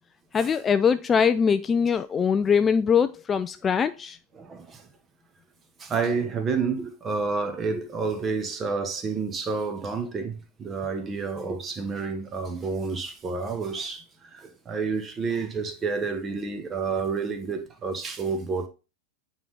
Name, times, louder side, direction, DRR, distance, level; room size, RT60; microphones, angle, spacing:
voice 1, 0.3-4.2, left 6 dB, 20° left, 0.3 m, -22 dB
voice 2, 4.4-4.8 5.8-14.0 14.3-18.7, right 4 dB, 20° right, 1.2 m, -29 dB
8.9 x 4.1 x 3.5 m
figure-of-eight pair, 90°, 0 cm